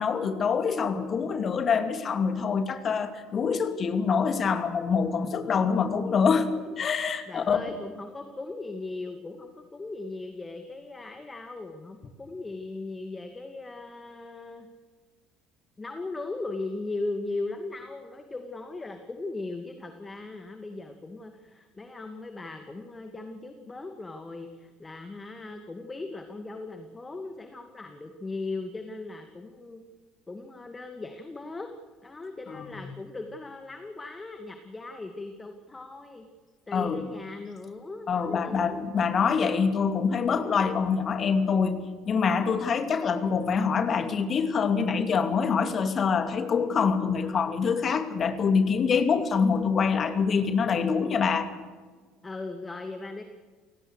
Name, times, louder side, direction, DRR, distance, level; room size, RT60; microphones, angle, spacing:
voice 1, 0.0-7.6 32.5-32.9 36.7-37.0 38.1-51.5, left 6 dB, 40° left, 8 dB, 2.5 m, -25 dB
voice 2, 5.0-5.5 7.3-14.7 15.8-29.8 30.3-31.7 32.0-36.3 36.7-38.8 47.2-47.6 52.2-53.2, left 3 dB, 20° left, 6 dB, 2.3 m, -38 dB
30.0 x 18.0 x 6.5 m, 1.4 s
figure-of-eight pair, 60°, 0 cm